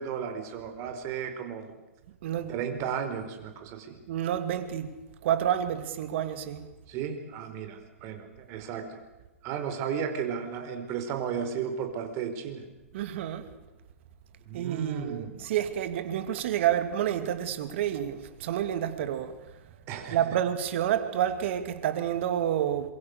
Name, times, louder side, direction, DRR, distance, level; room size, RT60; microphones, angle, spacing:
voice 1, 0.0-1.7 2.5-4.0 6.9-9.0 9.4-12.6 14.5-15.3 19.9-20.3, right 7 dB, 40° right, 4.7 m, -34 dB
voice 2, 2.2-2.8 4.1-4.9 5.2-6.6 12.9-13.5 14.5-19.4 20.1-22.9, right 10 dB, 55° right, 2.7 m, -29 dB
26.5 x 23.5 x 6.8 m
hypercardioid pair, 115°, 8 cm